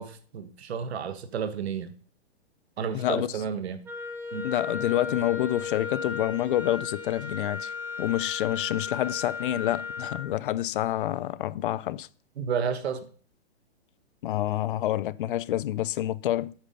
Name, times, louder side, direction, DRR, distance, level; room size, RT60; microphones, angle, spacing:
voice 1, 0.0-1.9 2.8-3.8 4.3-4.5 12.4-13.1, right 7 dB, 70° right, 1.3 m, -31 dB
voice 2, 2.9-3.3 4.4-7.7 8.0-12.1 14.2-16.5, left 13 dB, 55° left, 0.5 m, -28 dB
Wind instrument woodwind instrument, 3.9-10.3, left 5 dB, 5° right, 1.0 m, -35 dB
8.8 x 5.5 x 5.1 m
hypercardioid pair, 145°, 33 cm